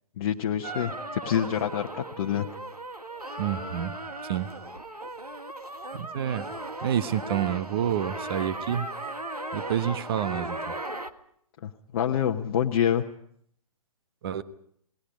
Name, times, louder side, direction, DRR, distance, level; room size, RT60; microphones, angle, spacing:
voice 1, 0.2-2.5 11.6-13.0, left 9 dB, 40° left, 2 dB, 1.1 m, -27 dB
sound 1, 0.6-11.1, right 2 dB, 90° right, 1.6 m, -37 dB
voice 2, 3.4-3.9 4.2-4.5 5.9-6.5 6.8-8.9 9.5-10.8 14.2-14.4, right 9 dB, 40° right, 12 dB, 1.3 m, -28 dB
28.5 x 20.0 x 5.1 m, 0.67 s
figure-of-eight pair, 130°, 19 cm